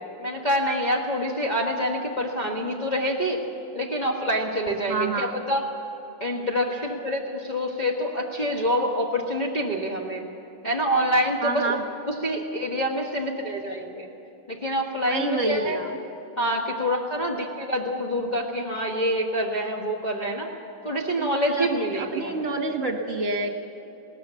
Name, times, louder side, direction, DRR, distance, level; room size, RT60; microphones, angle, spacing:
voice 1, 0.2-3.4 3.7-5.7 6.2-10.2 10.6-11.8 12.1-14.1 14.5-15.8 16.4-20.5 20.8-22.5, equal, 25° left, -2 dB, 1.5 m, -26 dB
voice 2, 4.9-5.3 11.4-11.8 15.1-16.0 21.2-23.5, right 3 dB, 40° right, 4 dB, 1.9 m, -28 dB
20.5 x 18.5 x 7.1 m, 3.0 s
omnidirectional pair, 2.3 m